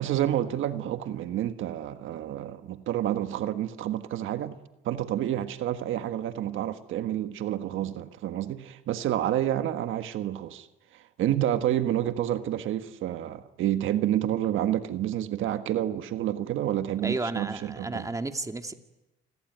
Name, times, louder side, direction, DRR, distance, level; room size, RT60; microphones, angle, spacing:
voice 1, 0.0-4.6 4.8-10.7 10.9-18.1, right 12 dB, 85° right, 1.5 m, -29 dB
voice 2, 17.0-18.7, right 2 dB, 15° right, 2.1 m, -32 dB
28.5 x 20.0 x 9.3 m
cardioid pair, 90°, 20 cm